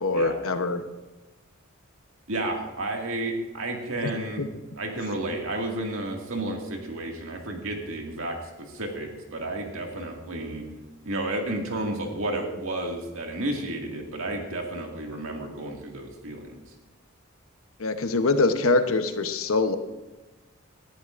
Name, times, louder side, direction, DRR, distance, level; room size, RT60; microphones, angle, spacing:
voice 1, 0.0-0.8 4.0-4.1 4.4-4.5 17.8-19.8, left 3 dB, 70° left, 8 dB, 0.9 m, -24 dB
voice 2, 2.3-4.4 4.7-8.4 8.7-10.6 11.1-16.6, right 1 dB, 65° right, 1 dB, 2.1 m, -31 dB
18.0 x 11.5 x 2.5 m, 1.1 s
head